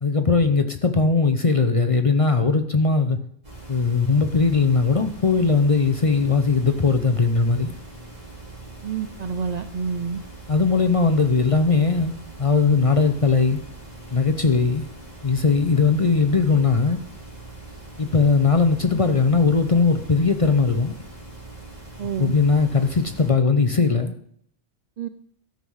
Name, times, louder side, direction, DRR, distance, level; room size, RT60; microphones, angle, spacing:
voice 1, 0.0-3.2 3.7-7.7 10.5-13.6 14.1-14.9 15.2-17.0 18.0-20.9 22.2-24.1, left 4 dB, 35° left, 8 dB, 0.6 m, -19 dB
sound 1, 3.4-23.3, right 2 dB, 35° right, 3.4 m, -42 dB
voice 2, 8.8-10.2 22.0-22.3 25.0-25.1, right 6 dB, 60° right, 10 dB, 0.4 m, -28 dB
13.0 x 5.6 x 6.3 m, 0.66 s
omnidirectional pair, 1.2 m